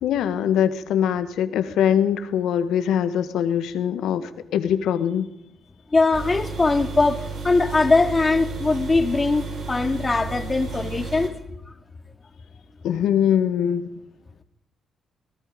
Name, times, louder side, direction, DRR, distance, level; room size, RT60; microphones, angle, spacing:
voice 1, 0.0-5.3 12.8-13.9, left 9 dB, 75° left, 1.5 m, -22 dB
voice 2, 5.9-11.3, left 3 dB, 30° left, 2.2 m, -21 dB
sound 1, 6.1-11.3, right 4 dB, 70° right, 4.9 m, -33 dB
26.0 x 18.5 x 5.3 m
supercardioid pair, 60°, 0 cm